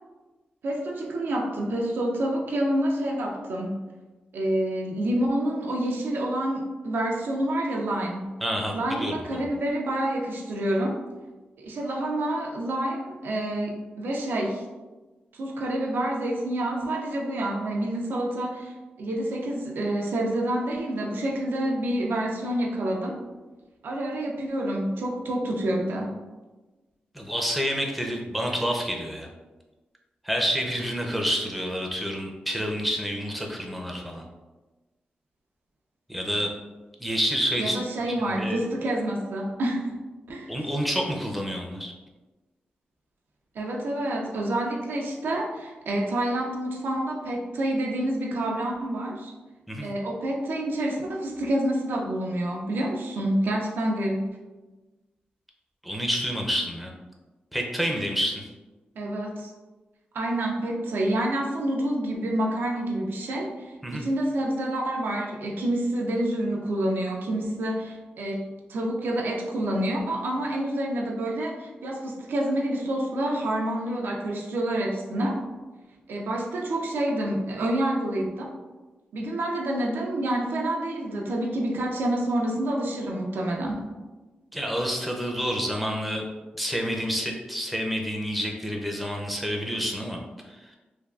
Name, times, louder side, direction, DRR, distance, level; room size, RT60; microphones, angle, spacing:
voice 1, 0.6-3.8 4.3-8.3 8.7-11.0 11.6-14.6 15.3-23.2 23.8-26.2 37.6-40.0 40.3-40.7 43.5-49.3 49.8-54.3 59.0-59.5 60.1-75.4 76.1-78.5 79.1-83.9, right 1 dB, 80° right, -1 dB, 0.5 m, -28 dB
voice 2, 8.4-9.4 27.1-29.3 30.2-34.2 36.1-36.5 37.0-37.8 38.1-38.6 40.5-41.9 49.7-49.9 55.8-56.9 57.5-58.5 63.8-64.0 84.5-86.3 86.6-90.2 90.5-90.8, equal, ahead, 0 dB, 0.5 m, -28 dB
3.3 x 2.2 x 2.3 m, 1.2 s
cardioid pair, 65°, 4 cm